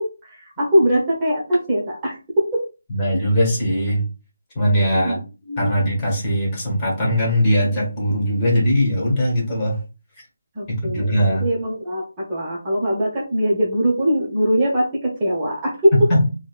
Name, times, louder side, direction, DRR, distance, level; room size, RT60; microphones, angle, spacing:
voice 1, 0.0-2.6 4.9-5.2 5.5-5.7 10.5-16.1, equal, 20° right, -5 dB, 1.0 m, -21 dB
voice 2, 2.9-4.0 4.5-5.2 5.6-9.8 10.7-11.5 16.1-16.3, equal, 25° left, -3 dB, 1.6 m, -20 dB
3.9 x 2.4 x 2.4 m, 0.31 s
figure-of-eight pair, 155°, 0 cm